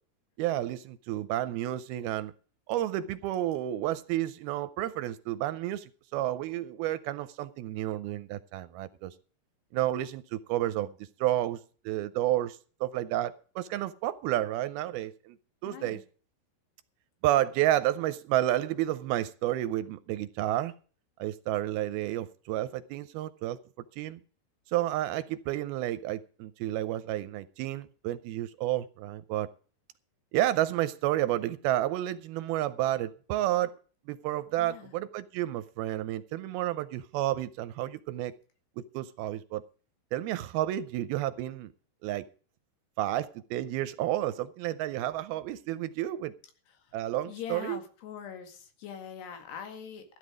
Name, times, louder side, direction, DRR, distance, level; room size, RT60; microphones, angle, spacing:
voice 1, 0.4-2.3 2.7-9.1 9.7-10.9 11.2-11.6 11.9-15.4 15.6-16.0 17.2-20.7 21.2-23.6 24.0-24.2 24.7-29.5 30.3-33.7 34.1-38.3 38.8-39.6 40.1-41.7 42.0-42.3 43.0-46.3 46.9-47.8, right 14 dB, 80° right, 13 dB, 2.4 m, -31 dB
voice 2, 15.7-16.0 34.6-34.9 47.3-50.2, left 8 dB, 80° left, 6 dB, 4.1 m, -42 dB
14.5 x 10.0 x 5.0 m, 0.41 s
omnidirectional pair, 4.7 m